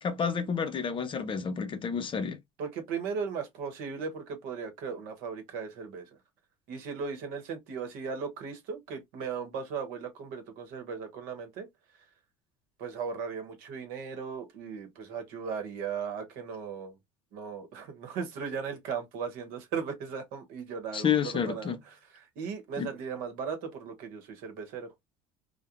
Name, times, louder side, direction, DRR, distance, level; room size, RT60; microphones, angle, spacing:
voice 1, 0.0-2.4 20.9-21.8 22.8-22.9, left 7 dB, 35° left, 0.6 m, -30 dB
voice 2, 2.6-6.1 6.7-11.7 12.8-17.0 17.3-21.8 22.4-24.9, right 6 dB, 65° right, 1.0 m, -37 dB
2.3 x 2.1 x 2.8 m
hypercardioid pair, 85°, 16 cm